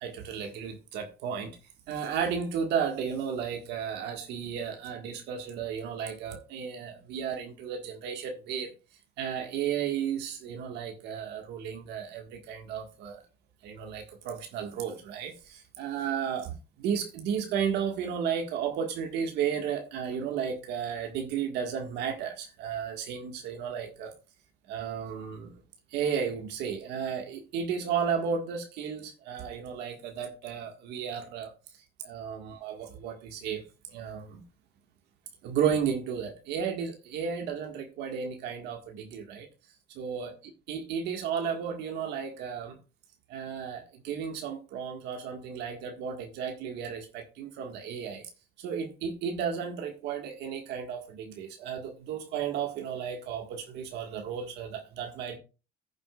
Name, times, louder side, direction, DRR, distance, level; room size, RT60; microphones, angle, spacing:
voice 1, 0.0-1.5 1.9-8.7 9.2-13.2 13.6-24.1 24.7-25.6 25.9-31.5 32.0-33.6 33.9-34.4 35.4-39.5 39.9-40.3 40.7-42.8 43.3-48.3 48.6-55.4, right 7 dB, 85° right, 1.8 m, -33 dB
15.0 x 7.5 x 2.4 m
cardioid pair, 110°, 17 cm